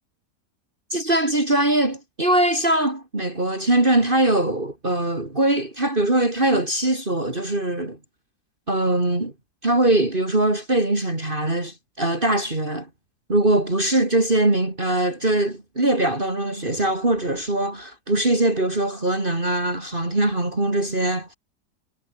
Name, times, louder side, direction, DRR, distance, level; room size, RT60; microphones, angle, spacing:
voice 1, 0.9-8.0 8.7-9.3 9.6-12.9 13.3-21.3, right 1 dB, 30° right, 4.1 m, -22 dB
omnidirectional pair, 1.8 m